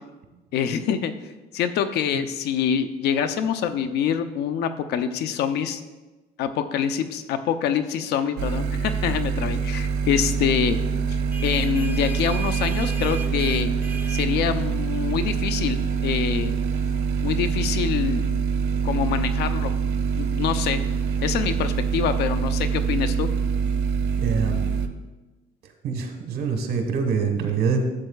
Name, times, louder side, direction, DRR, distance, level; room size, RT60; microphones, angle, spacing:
voice 1, 0.5-1.1 1.5-5.8 6.4-10.8 11.1-13.7 14.1-16.5 17.2-18.3 18.8-19.7 20.2-20.8 21.2-23.3, left 8 dB, 75° left, 10 dB, 0.6 m, -25 dB
sound 1, 8.4-24.9, right 6 dB, 85° right, 0.6 m, -25 dB
sound 2, 11.2-22.4, right 5 dB, 10° right, 0.6 m, -42 dB
voice 2, 24.2-24.7 25.6-27.9, right 5 dB, 70° right, 4 dB, 1.3 m, -25 dB
12.0 x 7.5 x 2.3 m, 1.2 s
cardioid pair, 110°, 17 cm